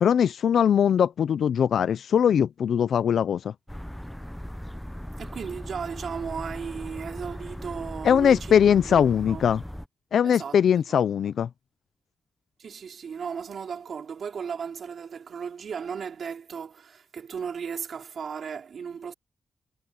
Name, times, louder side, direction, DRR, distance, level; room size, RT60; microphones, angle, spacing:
voice 1, 0.0-3.5 8.0-9.6 10.1-11.5, left 8 dB, 85° left, 0.4 m, -21 dB
sound 1, 3.7-9.9, equal, 5° left, 0.5 m, -38 dB
voice 2, 5.2-9.4 10.2-11.0 12.6-19.1, right 6 dB, 65° right, 3.3 m, -36 dB
wide cardioid pair, 145°, 0 cm